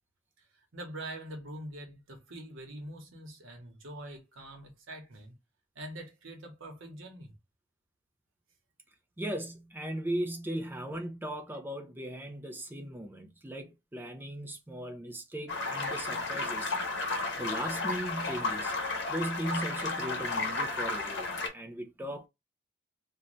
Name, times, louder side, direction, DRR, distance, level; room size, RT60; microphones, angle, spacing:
voice 1, 0.4-5.3 5.7-7.3, right 1 dB, 85° right, 0.9 m, -44 dB
voice 2, 9.2-16.7 17.4-18.7 19.1-22.3, right 1 dB, 10° right, 0.4 m, -37 dB
sound 1, 15.5-21.5, left 3 dB, 60° left, 0.9 m, -33 dB
2.5 x 2.2 x 3.0 m
head